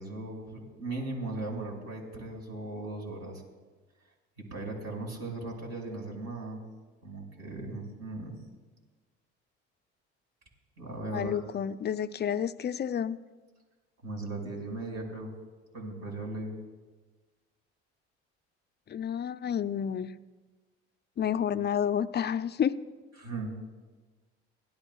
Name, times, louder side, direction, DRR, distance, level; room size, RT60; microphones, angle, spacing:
voice 1, 0.0-3.4 4.5-6.6 7.0-8.3 10.8-11.4 14.0-15.3 15.7-16.6 23.2-23.6, right 2 dB, 50° right, 0 dB, 5.7 m, -37 dB
voice 2, 11.1-13.2 18.9-20.1 21.2-22.8, left 8 dB, 30° left, 13 dB, 0.6 m, -30 dB
24.5 x 17.0 x 2.4 m, 1.3 s
hypercardioid pair, 60°, 34 cm